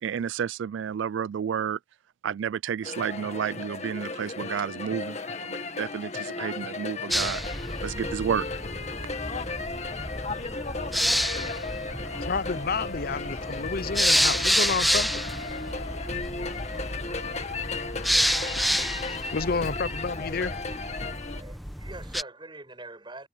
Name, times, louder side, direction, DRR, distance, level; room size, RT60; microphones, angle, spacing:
voice 1, 0.0-1.8 2.2-8.5, right 8 dB, 75° right, 0.3 m, -31 dB
sound 1, 2.8-21.4, left 3 dB, 35° left, 1.9 m, -35 dB
sound 2, 4.6-4.7 6.3-9.8 10.1-18.9 20.5-20.6 20.9-21.0 21.3-21.4, left 2 dB, 75° left, 4.6 m, -44 dB
sound 3, 7.1-22.2, equal, ahead, 1.3 m, -29 dB
voice 2, 12.2-15.1 19.3-20.6, left 4 dB, 50° left, 0.7 m, -30 dB
voice 3, 21.3-23.3, right 2 dB, 25° right, 7.0 m, -43 dB
head